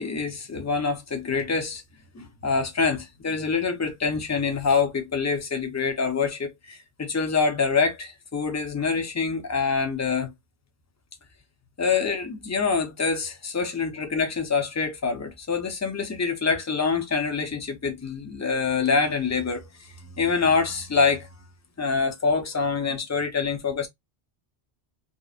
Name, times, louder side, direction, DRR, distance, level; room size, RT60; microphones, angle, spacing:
voice 1, 0.0-1.8 2.1-10.3 11.8-21.3 21.8-23.9, left 5 dB, 20° left, 0.5 m, -25 dB
2.8 x 2.0 x 2.3 m
omnidirectional pair, 1.1 m